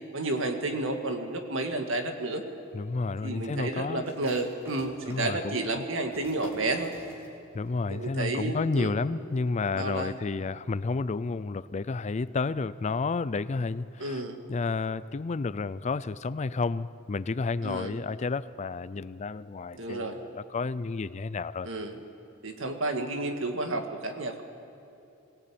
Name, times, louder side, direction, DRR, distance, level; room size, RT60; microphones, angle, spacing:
voice 1, 0.1-2.4 3.2-6.9 7.9-8.9 9.7-10.2 14.0-14.4 17.6-18.0 19.7-20.2 21.6-22.0 22.4-24.4, right 2 dB, 70° right, 5 dB, 2.0 m, -31 dB
voice 2, 2.7-4.0 5.1-5.8 7.5-14.2 14.5-21.7, left 4 dB, 35° left, 17 dB, 0.4 m, -31 dB
sound 1, 4.0-7.7 8.0-8.1 8.5-9.0, equal, 15° right, 3.4 m, -50 dB
22.5 x 18.0 x 8.7 m, 2.7 s
head